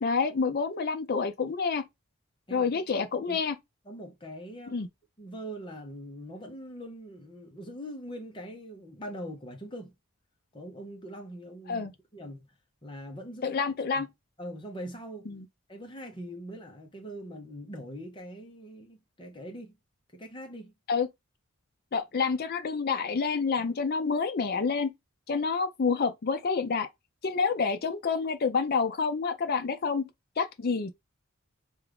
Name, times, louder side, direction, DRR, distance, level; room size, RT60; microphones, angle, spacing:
voice 1, 0.0-1.8 2.5-3.5 4.7-4.9 11.7-11.9 13.4-14.1 15.3-15.4 20.9-21.1 21.9-24.9 25.3-26.9 27.2-30.0 30.4-30.9, left 5 dB, 45° left, 0.4 m, -28 dB
voice 2, 2.5-2.9 3.3-3.4 3.8-4.9 5.2-9.9 10.5-12.5 12.8-14.1 14.4-15.3 15.7-19.7 20.1-20.7 23.6-23.8, equal, 20° left, 0.8 m, -42 dB
3.5 x 2.4 x 3.3 m
head